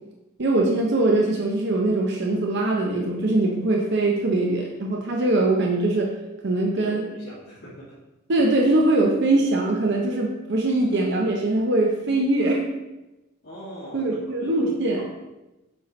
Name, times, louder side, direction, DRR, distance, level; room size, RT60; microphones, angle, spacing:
voice 1, 0.4-6.1 6.4-7.0 8.3-12.6 13.9-15.0, right 2 dB, 55° right, -1 dB, 0.7 m, -22 dB
voice 2, 6.7-7.9 13.4-14.1 14.4-14.7 14.9-15.0, equal, 55° left, -12 dB, 2.2 m, -40 dB
7.9 x 4.4 x 3.2 m, 1.0 s
head